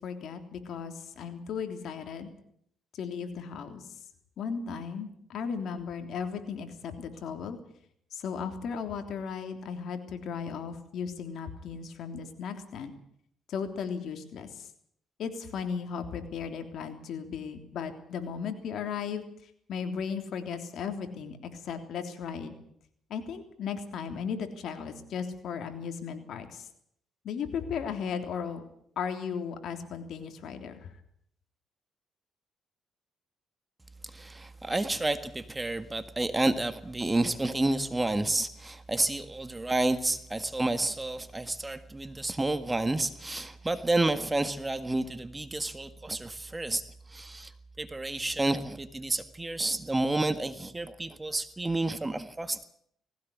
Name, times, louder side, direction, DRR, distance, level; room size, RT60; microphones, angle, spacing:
voice 1, 0.0-2.3 2.9-3.8 4.4-7.6 8.1-12.9 13.5-14.7 15.2-22.5 23.1-26.7 27.2-28.6 28.9-30.9, left 6 dB, 70° left, 7 dB, 3.3 m, -36 dB
voice 2, 34.0-47.5 47.8-52.6, right 2 dB, 15° right, 11 dB, 1.7 m, -30 dB
19.5 x 17.0 x 8.6 m, 0.69 s
cardioid pair, 90°, 0 cm